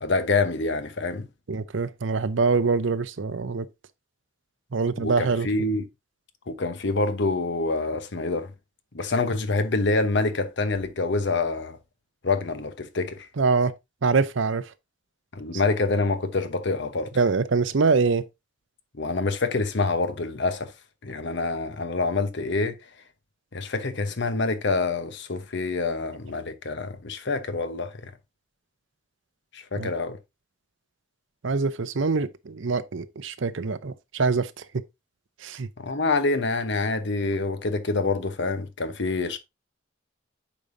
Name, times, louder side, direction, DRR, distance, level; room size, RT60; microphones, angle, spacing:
voice 1, 0.0-1.3 5.0-5.9 6.5-8.5 8.9-11.8 12.2-13.2 15.3-17.1 19.0-20.7 21.0-22.8 23.5-28.1 29.5-30.2 35.8-39.4, left 3 dB, 65° left, 1.0 m, -26 dB
voice 2, 1.5-3.7 4.7-5.5 13.4-13.7 14.0-14.6 17.2-18.2 29.8-29.9 31.4-34.5 35.4-35.7, right 4 dB, 70° right, 0.6 m, -24 dB
8.4 x 5.3 x 2.7 m
head